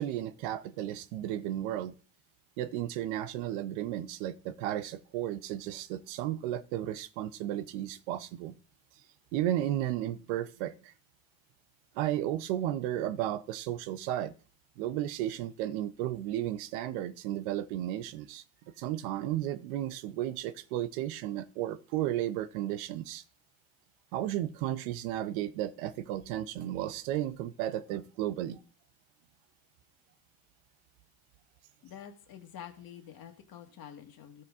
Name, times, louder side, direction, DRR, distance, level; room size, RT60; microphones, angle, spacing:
voice 1, 0.0-1.9 2.6-8.5 9.3-10.9 11.9-14.3 14.8-18.4 18.8-23.2 24.1-28.6, right 12 dB, 90° right, 0.8 m, -34 dB
voice 2, 31.8-34.4, left 9 dB, 60° left, 1.6 m, -48 dB
13.0 x 5.8 x 3.6 m
supercardioid pair, 80°, 40 cm